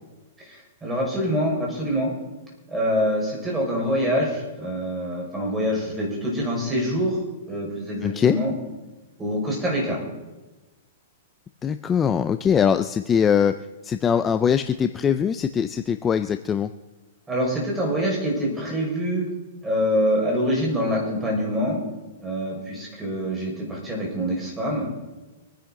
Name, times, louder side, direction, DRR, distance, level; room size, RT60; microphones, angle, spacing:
voice 1, 0.5-2.1 2.7-7.2 7.5-8.5 9.2-10.0 17.3-19.3 19.6-21.8 22.2-24.9, equal, 10° right, -2 dB, 5.3 m, -25 dB
voice 2, 8.0-8.4 11.6-13.5 13.8-16.7, left 7 dB, 20° left, 10 dB, 0.5 m, -21 dB
25.0 x 10.0 x 3.8 m, 1.1 s
hypercardioid pair, 145°, 0 cm